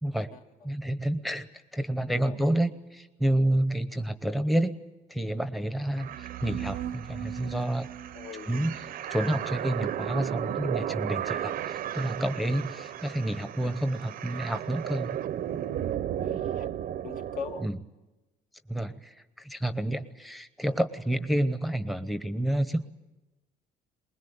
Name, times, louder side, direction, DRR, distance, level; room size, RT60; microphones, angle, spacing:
voice 1, 0.0-0.3 0.6-4.7 5.1-7.9 8.5-8.7 9.1-15.2 17.6-17.8 18.7-22.9, right 1 dB, ahead, 10 dB, 1.0 m, -29 dB
sound 1, 5.9-17.7, right 11 dB, 60° right, 0.8 m, -34 dB
voice 2, 8.1-8.7 16.1-16.7 17.0-17.7, left 6 dB, 55° left, 4 dB, 2.0 m, -41 dB
23.5 x 20.5 x 8.8 m, 1.1 s
cardioid pair, 110°, 17 cm